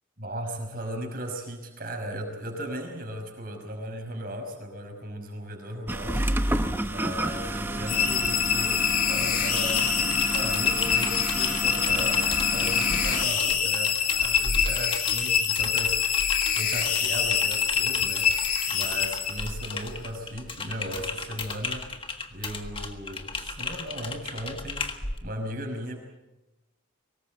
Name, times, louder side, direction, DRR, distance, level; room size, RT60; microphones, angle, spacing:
voice 1, 0.2-6.2 6.8-21.9 22.3-26.0, equal, 45° right, 3 dB, 5.6 m, -36 dB
sound 1, 5.9-13.3, right 1 dB, 10° right, 0.9 m, -30 dB
sound 2, 7.9-19.7, left 8 dB, 45° left, 2.7 m, -25 dB
Typing, 9.5-25.2, left 3 dB, 25° left, 1.6 m, -35 dB
24.0 x 19.5 x 7.8 m, 1.0 s
head